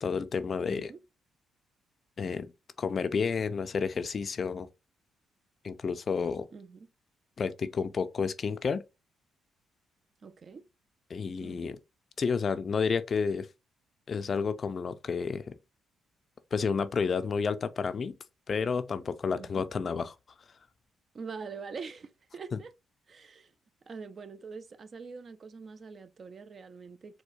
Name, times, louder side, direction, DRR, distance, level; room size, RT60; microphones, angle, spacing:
voice 1, 0.0-0.9 2.2-2.5 2.8-4.7 5.6-6.5 7.4-8.8 11.1-11.8 12.2-13.5 14.1-15.6 16.5-18.2 18.5-20.1 22.5-22.6, left 5 dB, 45° left, 0.3 m, -30 dB
voice 2, 0.7-1.0 6.5-6.9 10.2-10.6 11.4-11.7 19.3-19.7 21.1-22.7 23.1-23.5 23.9-27.2, right 5 dB, 45° right, 0.4 m, -44 dB
4.3 x 2.2 x 2.5 m
cardioid pair, 90°, 0 cm